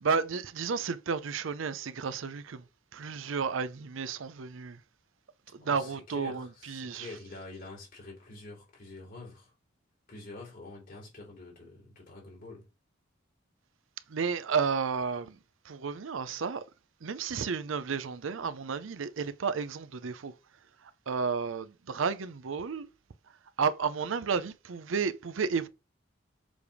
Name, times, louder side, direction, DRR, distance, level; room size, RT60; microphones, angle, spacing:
voice 1, 0.0-2.6 2.9-4.8 5.6-7.1 14.1-15.4 15.7-16.6 17.0-20.3 21.1-22.9 23.6-25.7, right 5 dB, 75° right, 0.5 m, -32 dB
voice 2, 5.6-9.5 10.1-12.7, left 2 dB, 45° left, 3.5 m, -46 dB
7.1 x 3.4 x 4.8 m
head